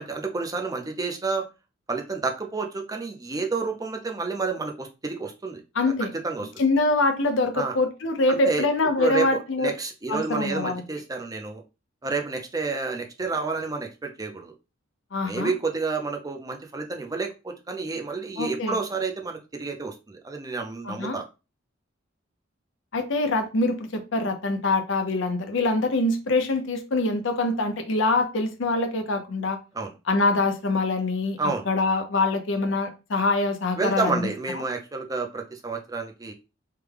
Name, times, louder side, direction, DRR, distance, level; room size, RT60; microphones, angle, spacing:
voice 1, 0.0-1.5 1.9-5.6 6.2-6.5 7.5-7.7 8.3-8.7 9.0-11.6 12.0-14.5 15.2-21.3 29.7-29.9 31.4-31.7 33.8-36.3, right 4 dB, 20° right, 0.5 m, -29 dB
voice 2, 5.7-6.1 6.6-9.7 10.1-10.8 15.1-15.5 18.4-18.8 20.8-21.2 22.9-29.6 30.1-34.2 34.5-34.6, left 2 dB, 65° left, 0.7 m, -24 dB
3.3 x 2.2 x 3.3 m
head